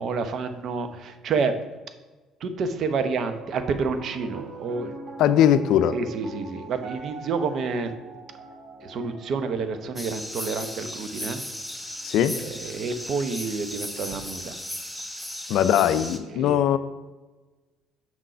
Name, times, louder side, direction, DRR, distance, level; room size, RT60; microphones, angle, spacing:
voice 1, 0.0-1.6 2.4-4.9 5.9-7.9 8.8-11.4 12.4-14.5 16.3-16.7, right 4 dB, 60° right, 9 dB, 0.7 m, -29 dB
Piano, 3.1-13.5, right 2 dB, 40° right, 1.3 m, -43 dB
voice 2, 5.2-6.0 12.0-12.4 15.5-16.8, left 10 dB, 70° left, 13 dB, 0.4 m, -20 dB
sound 1, 10.0-16.2, left 1 dB, ahead, 0.9 m, -36 dB
6.1 x 3.8 x 5.5 m, 1.2 s
supercardioid pair, 70°, 0 cm